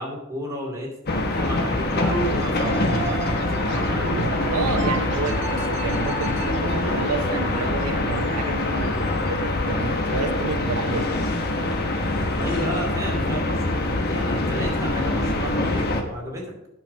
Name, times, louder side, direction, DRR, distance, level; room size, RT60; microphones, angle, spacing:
voice 1, 0.0-4.1 12.3-16.5, equal, 15° right, -3 dB, 2.6 m, -32 dB
sound 1, 1.1-16.0, left 2 dB, 45° left, 1.1 m, -24 dB
sound 2, 2.1-7.2, right 4 dB, 55° right, 1.8 m, -33 dB
voice 2, 4.4-11.1, right 4 dB, 90° right, 8 dB, 0.7 m, -30 dB
9.4 x 5.9 x 5.3 m, 0.90 s
head